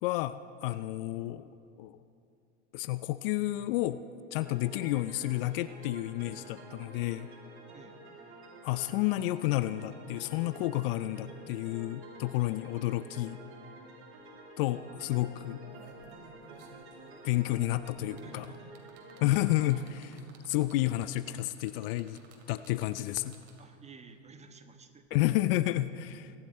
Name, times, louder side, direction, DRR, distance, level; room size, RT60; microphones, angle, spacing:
voice 1, 0.0-1.5 1.8-2.0 2.7-4.0 4.3-7.3 8.6-13.4 14.6-15.6 17.2-18.5 19.2-22.2 22.5-23.4 25.1-26.3, left 16 dB, 50° left, 14 dB, 0.5 m, -31 dB
sound 1, 4.3-19.8, right 2 dB, 35° right, 3.1 m, -50 dB
sound 2, 15.7-23.8 25.0-25.1, right 5 dB, 65° right, 2.7 m, -58 dB
voice 2, 18.2-18.6 23.6-25.2, right 4 dB, 20° right, 7 dB, 1.2 m, -52 dB
23.5 x 11.0 x 4.3 m, 2.6 s
hypercardioid pair, 100°, 36 cm